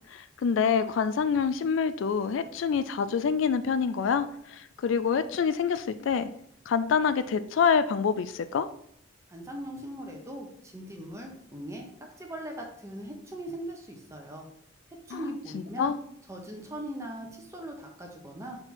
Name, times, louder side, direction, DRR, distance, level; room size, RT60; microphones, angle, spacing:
voice 1, 0.1-6.3 6.7-8.7 15.1-16.0, left 6 dB, 70° left, 13 dB, 0.3 m, -26 dB
voice 2, 9.3-11.9 12.2-14.5 15.1-15.9 16.3-18.6, right 1 dB, 15° right, 1 dB, 1.0 m, -40 dB
5.8 x 4.5 x 3.9 m, 0.71 s
head